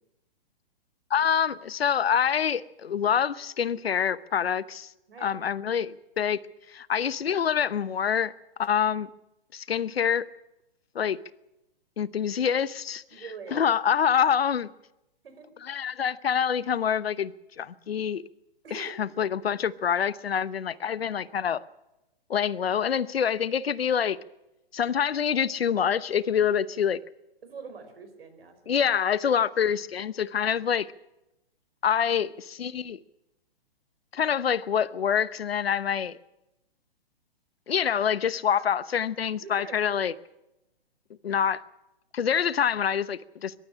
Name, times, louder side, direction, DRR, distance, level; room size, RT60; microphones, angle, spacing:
voice 1, 1.1-4.9 5.2-6.4 6.7-8.3 8.6-9.1 9.5-10.2 10.9-11.2 12.0-13.0 13.5-14.7 15.6-18.2 18.7-21.6 22.3-24.2 24.7-27.0 28.7-30.8 31.8-33.0 34.1-36.2 37.7-40.1 41.2-41.6 42.1-43.6, left 8 dB, 85° left, 1.0 m, -26 dB
voice 2, 5.1-5.4 13.1-13.8 15.2-15.5 18.6-19.0 20.7-20.8 21.1-21.3 26.3-26.5 27.4-28.9 30.4-30.6 38.5-38.7 39.4-39.9, right 5 dB, 75° right, 4.8 m, -44 dB
22.5 x 12.0 x 9.8 m
hypercardioid pair, 140°, 30 cm